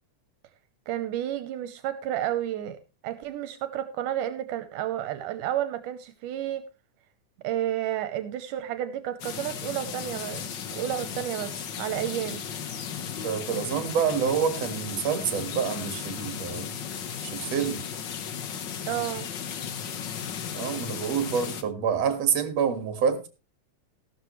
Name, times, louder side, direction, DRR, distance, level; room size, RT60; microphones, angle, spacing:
voice 1, 0.9-2.8 3.0-6.6 7.4-12.4 18.9-19.3, right 12 dB, 80° right, 10 dB, 2.4 m, -31 dB
sound 1, 9.2-21.6, left 7 dB, 65° left, 1.1 m, -35 dB
voice 2, 13.2-16.7 17.2-17.8 20.5-23.3, right 7 dB, 55° right, 8 dB, 2.7 m, -27 dB
14.5 x 12.5 x 3.2 m, 0.31 s
omnidirectional pair, 3.7 m